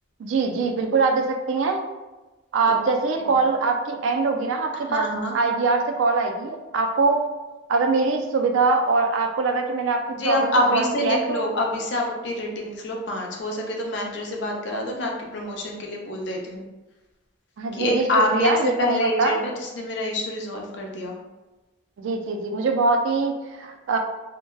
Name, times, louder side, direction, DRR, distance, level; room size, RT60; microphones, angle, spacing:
voice 1, 0.2-1.8 2.5-5.1 5.3-7.2 7.7-11.4 17.6-19.4 22.0-24.0, right 4 dB, 70° right, 4 dB, 0.3 m, -23 dB
voice 2, 4.9-5.3 10.1-16.7 17.7-21.2, left 1 dB, 55° left, 0 dB, 0.4 m, -26 dB
2.7 x 2.1 x 2.2 m, 1.1 s
head